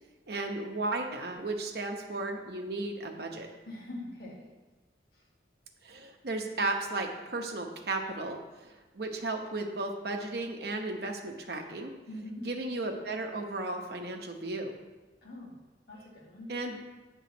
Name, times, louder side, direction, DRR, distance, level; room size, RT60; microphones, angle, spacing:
voice 1, 0.3-3.5 5.8-11.9 12.4-14.8 16.5-16.8, right 2 dB, 55° right, 3 dB, 0.8 m, -35 dB
voice 2, 3.7-4.5 5.1-5.2 12.1-12.5 15.2-15.6 15.9-16.5, left 1 dB, 55° left, -4 dB, 1.8 m, -43 dB
8.1 x 3.7 x 6.0 m, 1.2 s
head